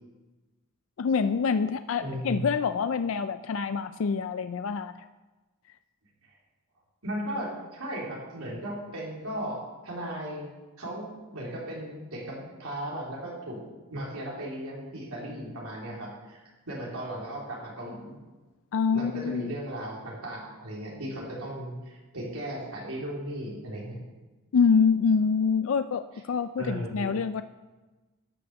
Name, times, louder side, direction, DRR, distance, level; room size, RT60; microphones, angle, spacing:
voice 1, 1.0-5.1 18.7-19.5 24.5-27.4, left 5 dB, 65° left, 11 dB, 0.4 m, -26 dB
voice 2, 2.0-2.4 7.0-10.5 10.8-13.6 13.9-18.2 18.9-24.0 26.6-27.1, right 1 dB, 85° right, -4 dB, 3.9 m, -36 dB
11.5 x 6.3 x 7.1 m, 1.2 s
head